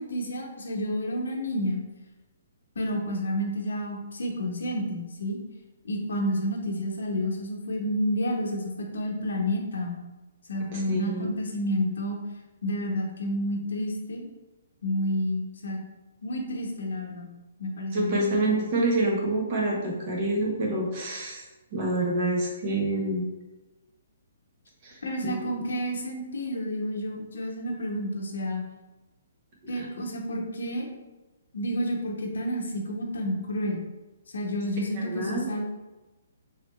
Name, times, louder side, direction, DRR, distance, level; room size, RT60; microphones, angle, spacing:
voice 1, 0.0-1.8 2.7-5.4 5.8-10.0 10.5-12.2 12.6-14.3 14.8-15.8 16.2-17.3 17.6-18.3 25.0-28.6 29.7-30.9 31.5-33.8 34.3-35.6, equal, 85° left, 0 dB, 0.8 m, -30 dB
voice 2, 10.7-11.2 17.9-21.4 21.7-23.2 24.8-25.0 25.2-25.5 29.7-29.8 35.0-35.4, right 2 dB, 35° right, -2 dB, 0.8 m, -27 dB
3.2 x 2.8 x 2.9 m, 1.1 s
hypercardioid pair, 165°, 0 cm